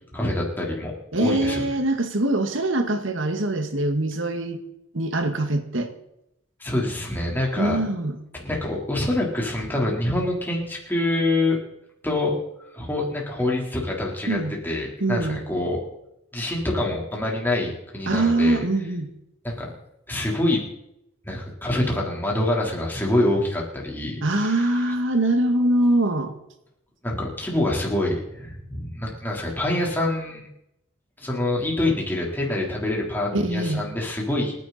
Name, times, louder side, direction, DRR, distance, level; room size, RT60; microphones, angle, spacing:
voice 1, 0.1-0.9 1.2-1.7 6.6-7.8 8.4-11.6 12.0-12.4 12.7-14.4 14.6-15.8 16.3-18.6 19.4-19.7 20.1-20.6 21.2-24.9 27.0-30.5 31.2-34.5, left 1 dB, 10° left, -2 dB, 4.1 m, -26 dB
voice 2, 1.1-4.6 4.9-5.9 7.6-8.2 14.3-14.5 15.0-15.4 18.1-19.1 24.2-26.3 33.3-33.8, right 1 dB, 70° right, 7 dB, 2.0 m, -23 dB
29.0 x 10.5 x 4.4 m, 0.82 s
head